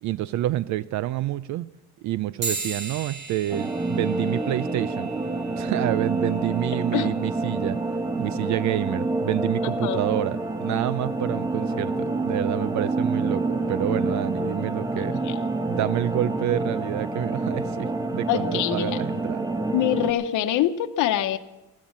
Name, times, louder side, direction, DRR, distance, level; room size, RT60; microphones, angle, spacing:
voice 1, 0.0-1.7 2.0-5.1 5.6-7.8 8.2-15.2 15.6-19.5, right 14 dB, 60° right, 17 dB, 0.5 m, -28 dB
sound 1, 2.4-12.2, right 4 dB, 35° right, 2.5 m, -40 dB
sound 2, 3.5-20.1, right 2 dB, 10° right, 1.1 m, -28 dB
voice 2, 18.3-19.0 19.7-21.4, left 12 dB, 70° left, 6 dB, 1.0 m, -24 dB
15.5 x 12.5 x 7.3 m, 1.0 s
cardioid pair, 145°, 32 cm